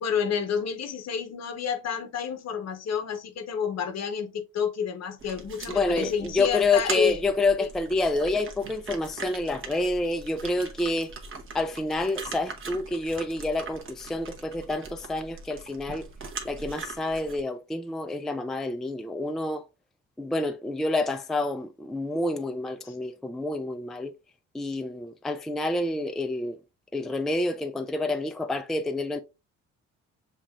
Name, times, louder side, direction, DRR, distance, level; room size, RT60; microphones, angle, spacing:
voice 1, 0.0-7.2 7.6-7.7 22.8-22.9, left 7 dB, 60° left, 0.9 m, -29 dB
sound 1, 5.2-17.4, right 4 dB, 45° right, 1.0 m, -41 dB
voice 2, 5.7-11.1 11.5-16.1 16.4-19.6 20.2-24.1 24.5-26.6 26.9-29.2, left 2 dB, ahead, 0.3 m, -28 dB
7.2 x 2.4 x 2.3 m
cardioid pair, 90°, 30 cm